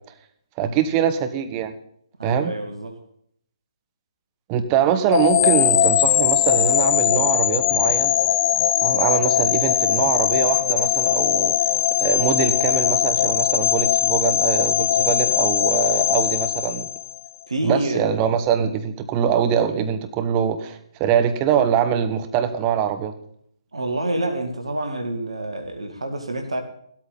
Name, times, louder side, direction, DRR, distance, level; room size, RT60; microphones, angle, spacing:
voice 1, 0.6-1.7 2.2-2.5 4.5-8.1 8.8-11.7 12.0-16.9 17.6-23.1, right 8 dB, 25° right, 1.3 m, -23 dB
voice 2, 2.2-3.0 17.5-18.4 23.7-26.6, right 1 dB, 75° right, 2.2 m, -27 dB
sound 1, 5.1-17.3, left 11 dB, 30° left, 0.7 m, -20 dB
15.5 x 13.0 x 4.1 m
figure-of-eight pair, 140°, 3 cm